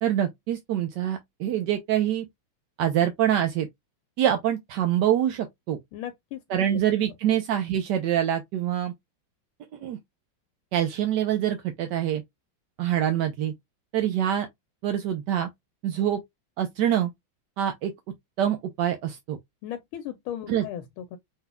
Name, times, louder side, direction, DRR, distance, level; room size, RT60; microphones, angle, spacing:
voice 1, 0.0-2.3 2.8-3.7 4.2-5.8 6.5-8.9 9.7-10.0 10.7-12.2 12.8-13.5 13.9-14.5 14.8-15.5 15.8-16.2 16.6-17.1 17.6-17.9 18.4-19.4 20.5-20.7, right 10 dB, 70° right, 1.1 m, -25 dB
voice 2, 5.9-6.8 19.6-21.2, left 10 dB, 80° left, 1.5 m, -37 dB
5.4 x 4.0 x 2.2 m
omnidirectional pair, 2.4 m